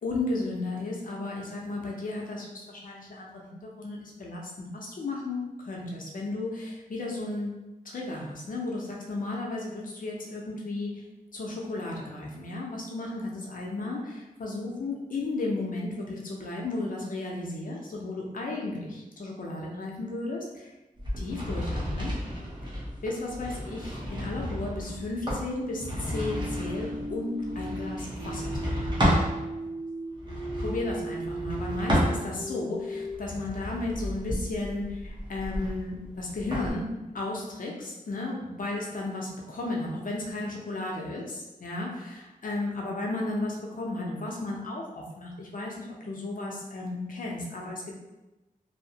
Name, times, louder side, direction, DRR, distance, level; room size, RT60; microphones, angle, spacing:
voice 1, 0.0-5.4 5.7-7.5 7.8-11.0 11.3-20.7 21.2-22.1 23.0-28.8 30.6-36.9 37.1-48.0, left 2 dB, 70° left, -2 dB, 0.6 m, -34 dB
sound 1, 21.0-29.3 30.1-32.6 33.1-36.7, equal, 30° right, 0.8 m, -32 dB
sound 2, 23.9-33.2, right 1 dB, 90° right, 0.9 m, -37 dB
2.7 x 2.1 x 2.7 m, 1.0 s
wide cardioid pair, 105°, 14 cm